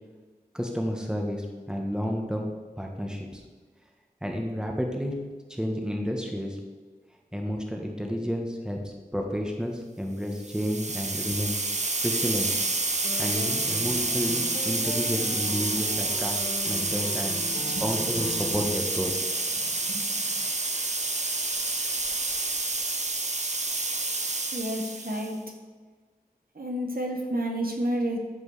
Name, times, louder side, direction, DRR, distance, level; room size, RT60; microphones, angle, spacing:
voice 1, 0.5-2.5 2.8-3.4 4.2-5.2 5.5-6.6 7.3-11.6 12.0-12.5 13.2-16.3 16.7-17.4 17.7-19.1, equal, 5° right, 1 dB, 1.6 m, -31 dB
sound 1, 10.4-25.3, right 2 dB, 45° right, 0.9 m, -29 dB
sound 2, 13.0-18.7, left 2 dB, 65° left, 2.0 m, -39 dB
voice 2, 17.5-17.8 19.6-20.1 24.5-25.4 26.5-28.2, right 1 dB, 65° right, 1 dB, 1.6 m, -30 dB
13.5 x 5.3 x 5.0 m, 1.4 s
wide cardioid pair, 45°, 16 cm